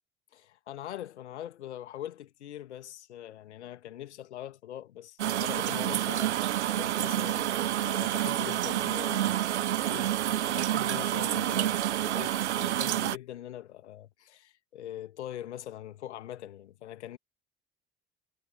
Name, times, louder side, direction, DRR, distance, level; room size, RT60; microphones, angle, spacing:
voice 1, 0.3-6.4 6.8-17.2, left 12 dB, 75° left, 2.1 m, -42 dB
sound 1, 5.2-13.2, right 12 dB, 75° right, 1.2 m, -28 dB
figure-of-eight pair, 50°, 35 cm